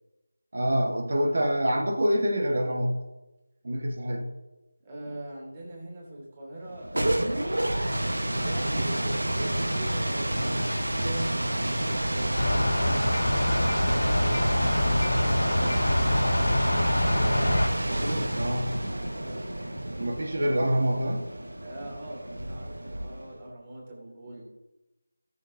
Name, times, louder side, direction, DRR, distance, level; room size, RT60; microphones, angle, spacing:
voice 1, 0.5-3.0 3.6-4.3 18.4-18.8 20.0-21.2, equal, 55° right, 4 dB, 1.5 m, -26 dB
voice 2, 4.8-7.9 8.4-19.4 21.6-24.4, right 1 dB, 20° right, -2 dB, 2.7 m, -41 dB
sound 1, 6.7-23.4, right 1 dB, 85° right, 1.1 m, -29 dB
sound 2, 12.4-17.7, left 1 dB, 80° left, 2.5 m, -25 dB
17.5 x 7.0 x 2.7 m, 1.0 s
figure-of-eight pair, 170°, 0 cm